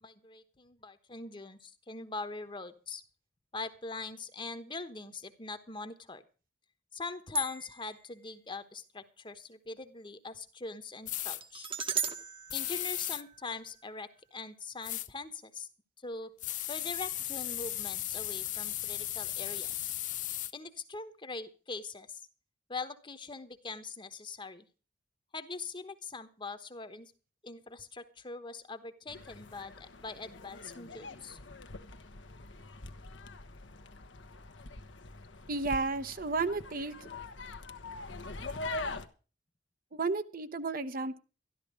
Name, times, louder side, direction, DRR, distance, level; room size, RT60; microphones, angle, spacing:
voice 1, 0.0-3.0 3.5-6.2 6.9-11.7 12.5-15.7 16.0-16.3 16.7-19.9 20.5-22.3 22.7-24.7 25.3-27.1 27.4-31.4, left 3 dB, 25° left, 11 dB, 1.1 m, -42 dB
sound 1, 7.3-8.0 11.4-13.7, right 3 dB, 30° right, 1.1 m, -36 dB
sound 2, 11.1-11.4 12.5-13.2 14.8-15.1 16.4-20.5, left 14 dB, 45° left, 0.5 m, -36 dB
sound 3, 29.1-39.1, left 2 dB, 80° left, 1.2 m, -44 dB
voice 2, 35.5-36.9 39.9-41.2, right 3 dB, 50° right, 11 dB, 0.9 m, -32 dB
13.0 x 12.0 x 5.0 m, 0.35 s
head